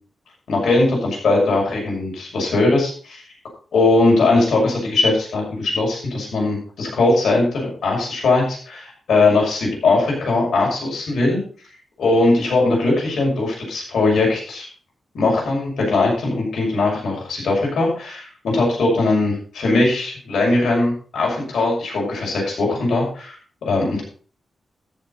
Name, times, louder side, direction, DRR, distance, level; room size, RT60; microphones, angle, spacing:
voice 1, 0.5-3.2 3.7-11.4 12.0-14.7 15.1-23.3 23.6-24.0, left 2 dB, 85° left, -1 dB, 6.3 m, -20 dB
14.0 x 7.5 x 4.2 m, 0.43 s
wide cardioid pair, 180°, 0 cm